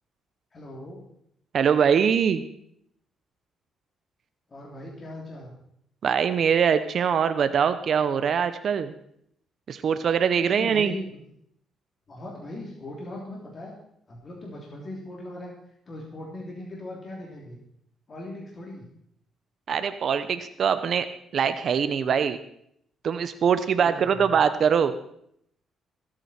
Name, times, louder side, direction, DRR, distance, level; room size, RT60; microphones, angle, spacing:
voice 1, 0.5-1.0 4.5-5.5 10.4-11.2 12.1-13.7 14.1-15.5 15.9-17.6 18.1-18.9 23.8-24.3, left 1 dB, 40° left, -2 dB, 3.2 m, -39 dB
voice 2, 1.5-2.4 6.0-8.9 9.7-10.9 19.7-21.1 21.3-22.4 23.0-25.0, right 7 dB, 55° right, 11 dB, 0.8 m, -23 dB
22.5 x 9.0 x 4.4 m, 0.72 s
cardioid pair, 90°, 0 cm